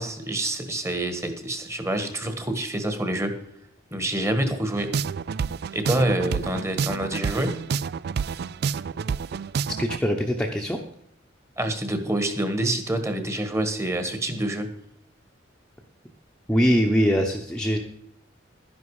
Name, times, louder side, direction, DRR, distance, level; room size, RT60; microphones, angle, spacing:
voice 1, 0.0-3.4 3.9-4.9 5.7-7.6 11.6-14.7, right 1 dB, 15° right, 8 dB, 1.5 m, -27 dB
sound 1, 4.8-10.0, right 6 dB, 55° right, 0.4 m, -28 dB
voice 2, 9.7-10.8 16.5-17.8, equal, 5° left, 1 dB, 1.0 m, -23 dB
12.5 x 10.5 x 4.9 m, 0.72 s
head